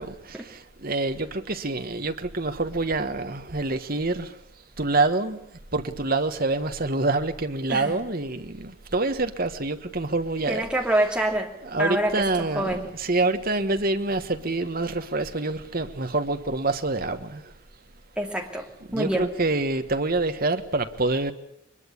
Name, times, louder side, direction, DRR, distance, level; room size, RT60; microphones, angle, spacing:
voice 1, 0.0-4.4 4.8-5.4 5.7-10.6 11.6-17.5 18.9-21.3, right 2 dB, 40° right, 1.4 m, -26 dB
voice 2, 7.7-8.0 10.5-11.5 11.8-12.9 18.2-18.7 18.9-19.3, right 1 dB, 5° right, 2.6 m, -26 dB
23.0 x 21.5 x 8.4 m
head